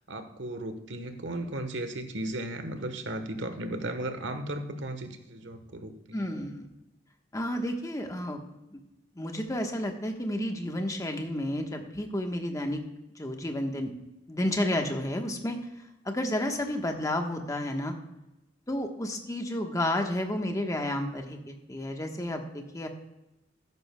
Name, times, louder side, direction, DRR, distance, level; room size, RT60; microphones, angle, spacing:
voice 1, 0.1-6.3, right 1 dB, 85° right, 8 dB, 1.1 m, -35 dB
voice 2, 6.1-6.7 7.3-8.4 8.7-8.8 9.2-12.8 13.2-13.9 14.3-15.6 16.0-17.9 18.7-22.9, left 1 dB, 20° left, 4 dB, 1.1 m, -31 dB
14.0 x 11.0 x 2.2 m, 0.93 s
head